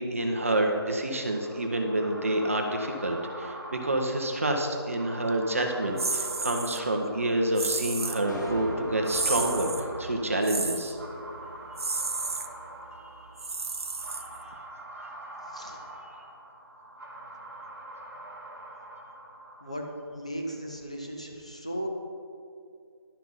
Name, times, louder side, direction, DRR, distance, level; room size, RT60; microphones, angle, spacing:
voice 1, 0.0-11.0, right 1 dB, 30° right, 3 dB, 0.8 m, -28 dB
sound 1, 1.1-20.0, right 1 dB, 50° right, 1.6 m, -44 dB
sound 2, 6.0-6.8 7.6-8.2 9.1-9.8 10.4-10.9 11.8-12.5 13.4-14.5, right 3 dB, 75° right, 0.7 m, -32 dB
sound 3, 8.3-12.7, equal, 45° left, 1.6 m, -40 dB
voice 2, 15.5-15.8 19.6-19.8 20.1-21.9, right 1 dB, 15° left, 0 dB, 0.4 m, -36 dB
11.5 x 5.9 x 5.4 m, 2.4 s
figure-of-eight pair, 175°, 14 cm